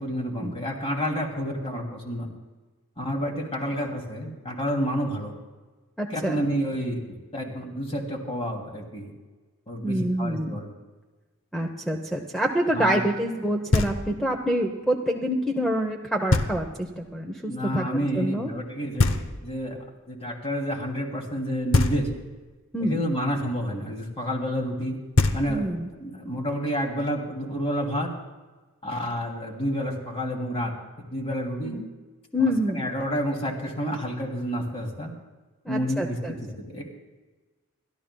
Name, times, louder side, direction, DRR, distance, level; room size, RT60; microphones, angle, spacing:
voice 1, 0.0-2.3 3.0-5.4 6.1-7.0 7.3-9.1 9.7-10.7 12.7-13.0 17.5-19.8 20.1-22.1 22.8-24.9 25.3-28.1 28.8-30.7 31.1-31.8 32.7-35.1 35.7-36.8, equal, 30° left, 1 dB, 2.7 m, -29 dB
voice 2, 6.0-6.4 9.8-10.6 11.5-18.5 22.7-23.0 25.5-25.9 31.6-31.8 32.3-32.9 35.7-36.4, equal, ahead, 2 dB, 0.8 m, -27 dB
Knock, 13.7-14.4 16.3-17.0 19.0-19.8 21.7-22.5 24.8-24.9 25.2-26.0, left 2 dB, 60° left, 0.8 m, -25 dB
29.5 x 12.5 x 2.3 m, 1.3 s
head